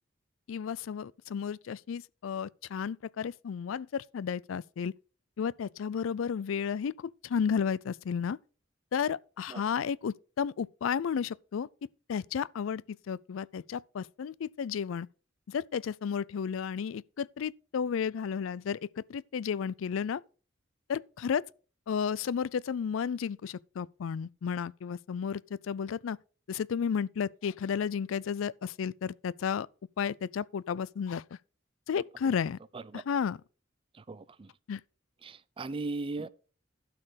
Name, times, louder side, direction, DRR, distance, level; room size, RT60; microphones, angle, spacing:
voice 1, 0.5-4.9 5.4-6.9 7.2-8.4 8.9-11.7 12.1-15.1 15.5-18.8 19.1-20.2 20.9-21.4 21.9-25.4 25.7-26.2 26.5-29.7 30.0-31.2 31.9-32.6 32.9-33.4 34.7-34.8, left 7 dB, 90° left, 0.4 m, -32 dB
voice 2, 34.1-34.5 35.2-36.3, right 3 dB, 25° right, 0.4 m, -37 dB
12.0 x 4.5 x 6.3 m
head